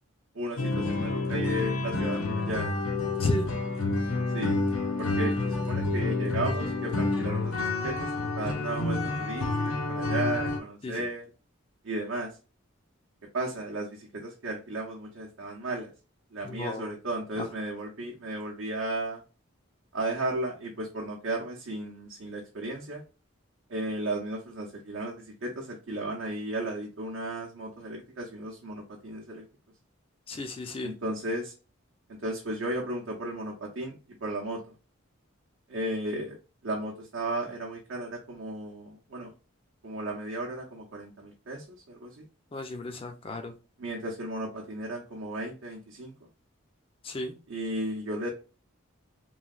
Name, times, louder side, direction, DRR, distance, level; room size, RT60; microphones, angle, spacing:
voice 1, 0.3-2.8 4.3-4.6 5.0-8.1 8.4-9.5 9.9-11.3 11.8-12.3 13.3-15.9 16.3-19.2 19.9-23.0 23.7-29.4 30.8-31.5 32.2-34.6 35.7-36.4 36.6-39.3 39.8-42.3 43.8-46.1 47.5-48.3, right 1 dB, 70° right, 0.6 m, -34 dB
sound 1, 0.6-10.6, left 2 dB, 90° left, 0.7 m, -29 dB
voice 2, 3.2-3.5 10.8-11.1 16.4-16.9 17.4-17.5 30.3-31.0 42.5-43.5 47.0-47.4, left 2 dB, 25° left, 0.4 m, -33 dB
3.0 x 2.7 x 2.3 m
head